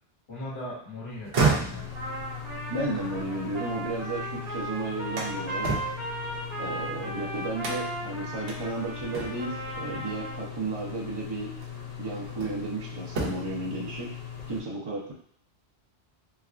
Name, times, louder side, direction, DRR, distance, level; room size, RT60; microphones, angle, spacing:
voice 1, 0.3-1.9 7.0-7.2, left 1 dB, 75° left, -9 dB, 1.6 m, -39 dB
truck pickup door open close real nice slam, 1.1-4.3 4.7-7.0 7.6-8.1 8.5-8.6 9.1-9.6 10.9-11.0 11.6-12.7 13.0-13.6, right 4 dB, 90° right, 1.0 m, -31 dB
sound 1, 1.7-14.6, left 8 dB, 50° left, 0.5 m, -40 dB
Trumpet, 1.9-10.5, right 2 dB, 60° right, 1.1 m, -37 dB
voice 2, 2.7-5.7 6.6-11.5 12.0-14.1 14.5-15.1, right 2 dB, 35° right, -3 dB, 0.5 m, -33 dB
3.3 x 2.2 x 2.4 m, 0.65 s
omnidirectional pair, 1.1 m